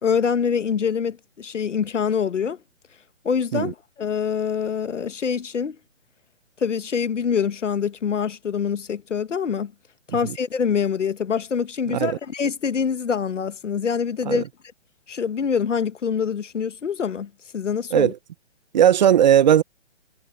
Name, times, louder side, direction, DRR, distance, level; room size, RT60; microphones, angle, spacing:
voice 1, 0.0-2.6 3.2-5.8 6.6-9.7 10.1-14.5 15.1-18.1, left 7 dB, 90° left, 1.2 m, -25 dB
voice 2, 11.9-12.2 14.3-14.4 17.9-18.2 18.7-19.6, right 10 dB, 40° right, 0.8 m, -17 dB
hypercardioid pair, 155°, 36 cm